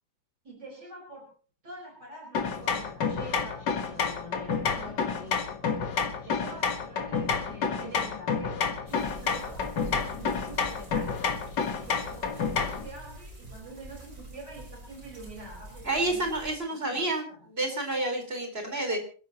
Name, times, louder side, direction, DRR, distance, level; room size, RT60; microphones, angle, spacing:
voice 1, 0.4-1.3 1.6-3.6 3.9-5.8 6.2-8.6 8.8-11.2 11.8-16.3 16.9-17.4, right 2 dB, 75° right, 1 dB, 5.5 m, -45 dB
sound 1, 2.3-12.9, left 5 dB, 80° left, 2.1 m, -29 dB
sound 2, 8.9-16.6, right 1 dB, 55° right, 5.8 m, -45 dB
voice 2, 15.8-19.0, right 2 dB, 35° right, 4 dB, 4.6 m, -29 dB
27.0 x 13.5 x 2.9 m, 0.41 s
omnidirectional pair, 1.8 m